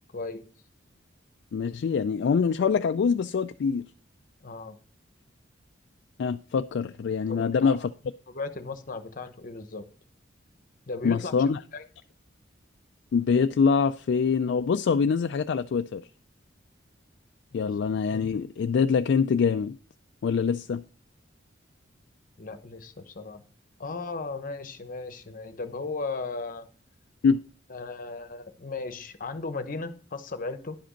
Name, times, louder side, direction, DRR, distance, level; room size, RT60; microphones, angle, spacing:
voice 1, 1.5-3.8 6.2-7.8 11.0-11.6 13.1-16.0 17.5-19.8 20.2-20.8 27.2-27.4, left 5 dB, 65° left, 0.3 m, -24 dB
voice 2, 4.4-4.8 7.3-7.9 8.3-9.8 10.9-11.3 11.7-11.8 17.5-17.7 22.4-23.4 23.8-26.7 27.7-30.8, left 3 dB, 45° left, 0.9 m, -36 dB
10.5 x 5.1 x 5.1 m
head